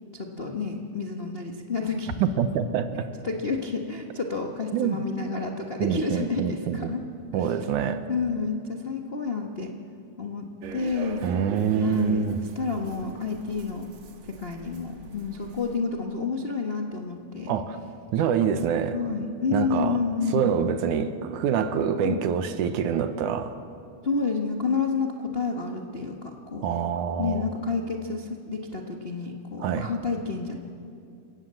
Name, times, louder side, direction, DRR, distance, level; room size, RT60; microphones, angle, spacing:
voice 1, 0.1-2.1 3.2-7.0 7.3-7.5 8.1-9.7 10.2-11.2 11.8-13.9 14.4-17.5 18.9-20.6 22.0-22.2 24.0-26.7 27.2-30.6, left 4 dB, 55° left, 1 dB, 0.6 m, -29 dB
voice 2, 2.2-3.1 4.7-5.0 5.8-6.9 7.3-8.0 11.2-12.4 17.5-17.8 18.1-19.0 19.5-20.0 20.3-23.6 26.6-27.5 29.6-29.9, right 8 dB, 85° right, 10 dB, 2.5 m, -26 dB
sound 1, 10.6-15.8, right 5 dB, 65° right, 2.7 m, -42 dB
28.5 x 17.0 x 7.6 m, 2.5 s
omnidirectional pair, 3.5 m